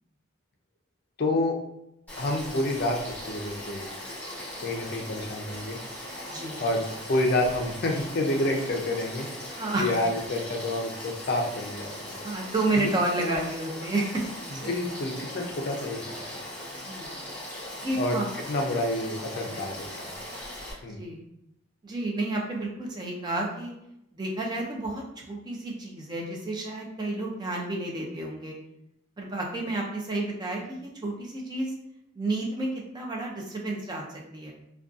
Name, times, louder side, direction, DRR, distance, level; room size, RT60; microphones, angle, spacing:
voice 1, 1.2-1.6 2.2-3.9 4.6-5.8 6.6-9.3 9.8-12.2 13.1-13.4 14.6-16.5 18.0-20.1 20.8-21.0, left 1 dB, 50° left, 1 dB, 0.4 m, -29 dB
Frog / Stream, 2.1-20.7, left 1 dB, 10° left, 0.8 m, -39 dB
voice 2, 9.5-9.9 12.2-14.7 16.9-17.2 17.7-18.3 19.4-19.6 21.0-21.2 21.8-23.7 24.1-28.5 29.2-31.7 32.2-34.5, right 2 dB, 20° right, -1 dB, 0.3 m, -31 dB
2.5 x 2.2 x 2.4 m, 0.82 s
head